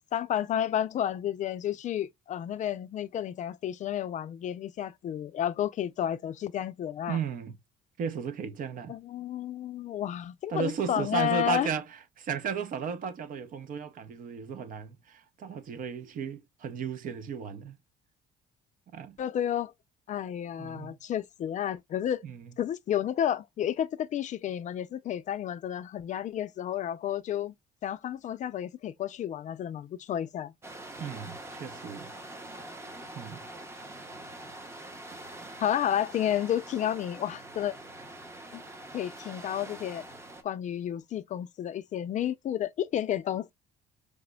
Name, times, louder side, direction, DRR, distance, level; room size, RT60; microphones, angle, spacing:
voice 1, 0.0-7.2 8.9-11.7 19.2-19.7 20.1-22.3 22.6-27.5 27.8-30.5 35.6-37.8 38.5-38.6 38.9-40.0 40.4-43.5, left 10 dB, 45° left, 0.4 m, -31 dB
voice 2, 7.1-7.6 8.0-9.0 10.5-17.8 18.9-19.2 20.6-21.0 22.2-22.5 31.0-32.1 33.1-33.5, right 7 dB, 55° right, 0.7 m, -35 dB
sound 1, 30.6-40.4, right 1 dB, 15° right, 0.7 m, -44 dB
4.9 x 2.1 x 2.2 m
cardioid pair, 110°, 17 cm